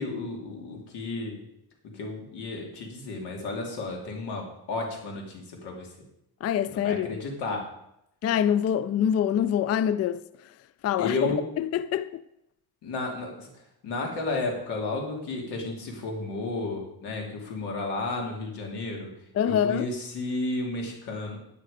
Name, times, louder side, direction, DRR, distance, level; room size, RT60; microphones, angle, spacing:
voice 1, 0.0-1.4 1.9-5.9 6.7-7.6 11.0-11.4 12.8-13.5 13.8-19.1 19.4-21.4, left 2 dB, 90° left, 2.7 m, -32 dB
voice 2, 6.4-7.2 8.2-10.2 10.8-12.2 19.4-19.9, left 9 dB, 40° left, 0.4 m, -25 dB
9.1 x 9.0 x 5.0 m
cardioid pair, 100°, 39 cm